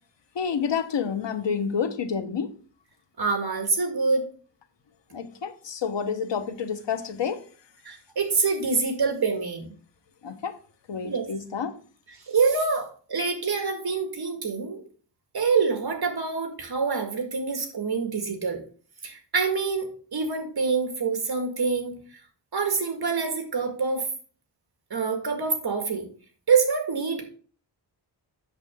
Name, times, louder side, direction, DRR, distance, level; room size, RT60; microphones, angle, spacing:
voice 1, 0.3-2.5 5.1-7.4 10.2-10.6 10.9-11.8, left 6 dB, 85° left, 1.0 m, -29 dB
voice 2, 3.2-4.2 7.8-9.7 11.0-11.2 12.1-14.8 15.3-18.6 19.0-21.9 22.5-24.0 24.9-26.1 26.5-27.2, right 5 dB, 60° right, 1.9 m, -26 dB
8.1 x 6.6 x 3.5 m
wide cardioid pair, 120°, 43 cm